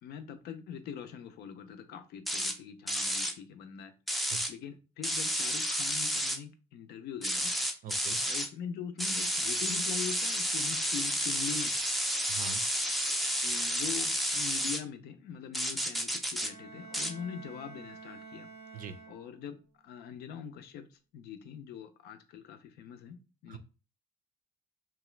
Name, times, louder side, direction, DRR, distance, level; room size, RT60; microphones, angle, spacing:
voice 1, 0.0-3.9 4.2-7.5 8.2-11.9 13.4-18.5 19.1-23.6, left 7 dB, 75° left, 8 dB, 0.5 m, -43 dB
sound 1, 2.3-2.5 2.9-3.3 4.1-4.5 5.0-6.4 7.2-8.5 9.0-14.8 15.5-16.5 16.9-17.1, equal, ahead, 0.4 m, -31 dB
voice 2, 7.8-8.2 12.3-12.6 18.7-19.0 23.5-23.6, right 7 dB, 55° right, 10 dB, 0.5 m, -42 dB
Bowed string instrument, 16.4-19.6, right 3 dB, 85° right, 0.7 m, -49 dB
2.9 x 2.3 x 3.1 m, 0.33 s
cardioid pair, 110°, 17 cm